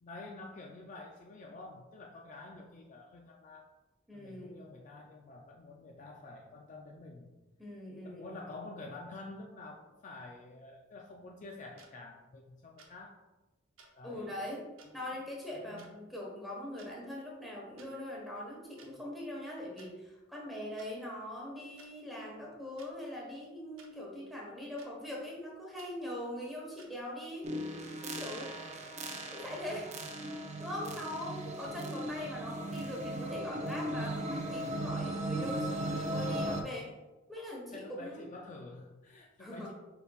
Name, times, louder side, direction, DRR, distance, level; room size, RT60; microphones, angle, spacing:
voice 1, 0.0-3.7 4.1-7.4 8.0-13.3 14.0-14.4 14.9-15.0 15.5-15.9 37.7-39.7, left 2 dB, 40° left, 0 dB, 0.4 m, -48 dB
voice 2, 4.1-4.7 7.6-8.4 14.0-14.6 14.9-27.5 28.2-28.5 29.3-30.0 30.6-36.9 37.3-38.2 39.4-39.7, left 1 dB, ahead, -3 dB, 1.1 m, -42 dB
sound 1, 11.8-11.9 12.8-12.9 13.8-13.9 14.8-14.9 15.8-15.9 16.6-16.9 17.8-17.9 18.8-18.9 19.8-19.9 20.8-20.9 21.8-21.9 22.8-22.9 23.8-23.9 24.8-24.9 25.8-25.9 26.8-26.9, right 5 dB, 90° right, 0.7 m, -57 dB
sound 2, 27.4-36.6, right 1 dB, 35° right, 0.5 m, -37 dB
5.0 x 4.5 x 2.3 m, 1.1 s
head